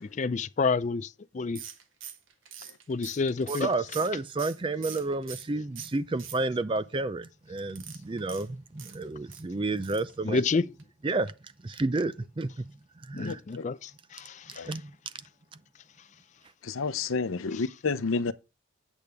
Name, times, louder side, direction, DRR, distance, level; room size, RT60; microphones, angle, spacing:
voice 1, 0.0-1.6 2.9-3.7 10.2-10.6 13.1-14.7 17.5-17.6, left 4 dB, 35° left, 0.4 m, -29 dB
sound 1, 1.6-5.5 5.8-6.8 7.7-9.4 9.8-10.1 10.4-10.5 10.8-10.9, right 9 dB, 75° right, 1.3 m, -44 dB
voice 2, 3.5-10.4 11.0-11.3 11.6-13.4 14.5-15.0, right 3 dB, 25° right, 0.4 m, -31 dB
voice 3, 13.2-13.6 14.6-14.7 16.6-18.3, left 4 dB, 85° left, 0.6 m, -30 dB
8.6 x 8.1 x 3.4 m
head